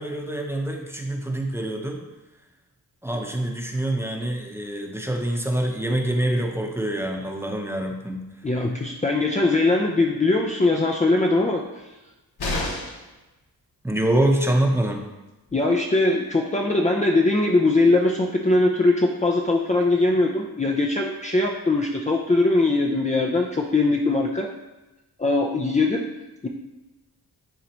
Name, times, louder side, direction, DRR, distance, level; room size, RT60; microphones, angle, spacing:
voice 1, 0.0-2.0 3.0-8.3 13.8-15.0, right 1 dB, 5° right, 1 dB, 0.9 m, -25 dB
voice 2, 8.4-11.9 15.5-24.5 25.2-26.1 26.4-26.5, left 2 dB, 20° left, -1 dB, 0.6 m, -21 dB
sound 1, 12.4-13.1 15.1-15.2 15.5-15.6, left 2 dB, 80° left, 1.4 m, -29 dB
10.5 x 3.9 x 3.0 m, 1.1 s
cardioid pair, 75°, 38 cm